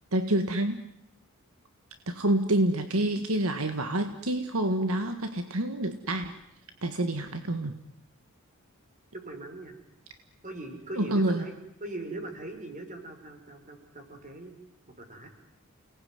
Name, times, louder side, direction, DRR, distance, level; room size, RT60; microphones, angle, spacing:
voice 1, 0.1-0.8 2.1-6.4 6.8-7.8 11.0-11.4, right 1 dB, 75° right, 8 dB, 1.8 m, -27 dB
voice 2, 9.1-9.8 10.4-11.5 11.8-14.5 15.0-15.3, right 2 dB, 35° right, 4 dB, 6.1 m, -40 dB
29.5 x 19.5 x 9.5 m, 0.79 s
head